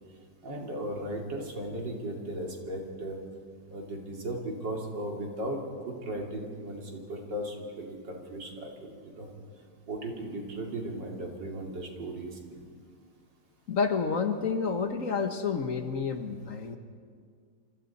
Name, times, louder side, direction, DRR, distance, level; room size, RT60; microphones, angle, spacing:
voice 1, 0.4-3.2 3.7-9.3 9.9-12.7, right 1 dB, 85° right, 1 dB, 3.4 m, -36 dB
voice 2, 13.7-16.8, left 5 dB, 50° left, 7 dB, 1.5 m, -29 dB
27.0 x 25.5 x 4.2 m, 2.1 s
omnidirectional pair, 1.9 m